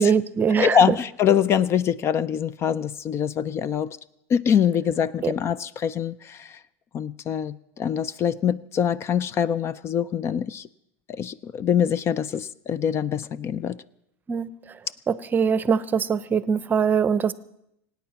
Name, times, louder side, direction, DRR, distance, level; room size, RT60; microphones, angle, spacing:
voice 1, 0.0-0.9 5.2-5.3 14.3-14.5 15.1-17.3, right 6 dB, 25° right, 17 dB, 0.7 m, -22 dB
voice 2, 0.6-4.0 4.3-6.6 6.9-10.7 11.1-13.8, left 8 dB, 35° left, 20 dB, 0.5 m, -24 dB
24.5 x 9.2 x 5.9 m, 0.81 s
supercardioid pair, 105°, 8 cm